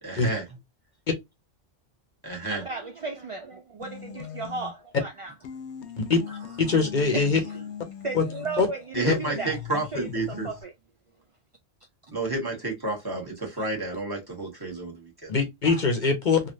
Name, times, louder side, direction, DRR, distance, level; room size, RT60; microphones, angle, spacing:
voice 1, 0.0-0.4 2.2-2.6 8.9-10.5 12.1-15.3, right 2 dB, 20° right, 1.3 m, -30 dB
voice 2, 2.5-5.3 6.3-6.4 7.1-7.6 8.0-10.7 15.6-15.8, right 3 dB, 60° right, 0.3 m, -36 dB
sound 1, 3.8-5.0 5.4-10.6, left 8 dB, 90° left, 0.9 m, -40 dB
voice 3, 6.6-7.4 8.1-8.2 8.6-8.7 9.0-9.1 15.3-16.4, left 4 dB, 50° left, 0.8 m, -22 dB
3.2 x 2.5 x 2.6 m
omnidirectional pair, 1.1 m